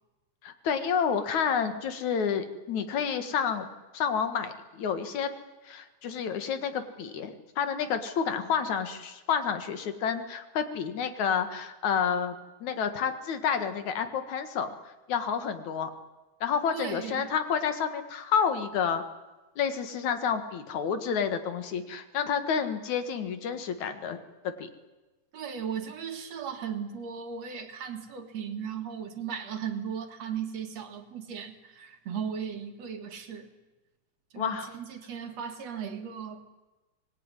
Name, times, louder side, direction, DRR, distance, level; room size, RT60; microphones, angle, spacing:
voice 1, 0.4-3.7 3.9-5.3 5.6-12.4 12.6-14.7 15.1-15.9 16.4-19.0 19.6-24.2 24.4-24.7 34.4-34.7, left 7 dB, 70° left, 9 dB, 3.1 m, -29 dB
voice 2, 16.7-17.3 25.3-33.5 34.3-36.4, right 7 dB, 60° right, 6 dB, 2.9 m, -36 dB
25.5 x 20.5 x 9.8 m, 1.2 s
omnidirectional pair, 3.5 m